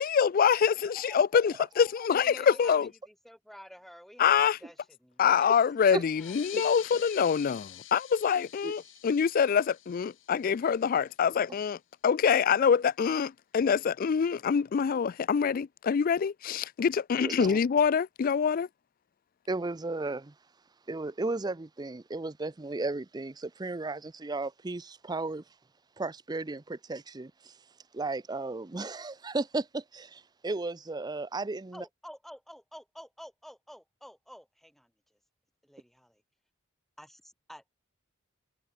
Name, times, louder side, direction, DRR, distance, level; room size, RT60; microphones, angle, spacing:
voice 1, 0.0-2.9 4.2-4.6 5.2-11.8 12.0-18.7, left 7 dB, 45° left, 0.3 m, -25 dB
voice 2, 0.9-1.4 1.7-2.0 2.3-6.6 31.7-35.2 35.6-36.2 37.0-37.6, equal, ahead, 7.8 m, -51 dB
sound 1, 6.1-11.2, left 13 dB, 70° left, 2.7 m, -47 dB
voice 3, 17.2-17.6 19.5-20.3 20.9-25.4 26.0-27.5 27.9-31.8, right 3 dB, 20° right, 0.5 m, -34 dB
head